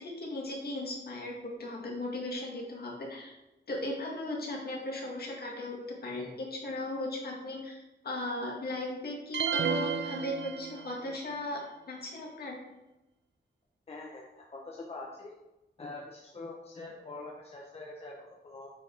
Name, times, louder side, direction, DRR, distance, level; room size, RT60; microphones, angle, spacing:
voice 1, 0.0-1.3 1.6-3.3 3.7-7.8 8.0-11.6 11.9-12.6, left 1 dB, 60° left, -1 dB, 2.2 m, -37 dB
sound 1, 9.3-11.2, right 6 dB, 80° right, 0.6 m, -32 dB
voice 2, 13.9-15.3 15.8-18.7, left 2 dB, 35° left, -2 dB, 1.0 m, -44 dB
8.7 x 5.1 x 4.7 m, 0.97 s
wide cardioid pair, 160°, 18 cm